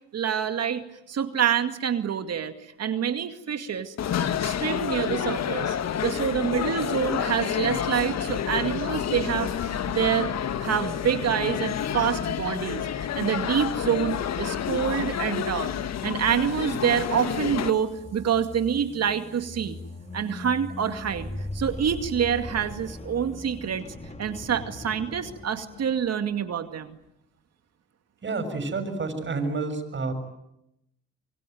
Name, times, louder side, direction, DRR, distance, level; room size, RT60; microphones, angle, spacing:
voice 1, 0.1-3.9 4.4-5.8 6.0-10.3 10.6-15.7 16.0-19.8 20.1-23.9 24.2-27.0, right 8 dB, 55° right, 8 dB, 2.3 m, -27 dB
sound 1, 4.0-17.7, left 9 dB, 60° left, 1.4 m, -29 dB
sound 2, 17.7-26.5, left 2 dB, 20° left, 2.4 m, -40 dB
voice 2, 28.2-30.1, right 3 dB, 40° right, 7 dB, 7.0 m, -29 dB
26.5 x 23.5 x 9.4 m, 0.84 s
cardioid pair, 90°, 30 cm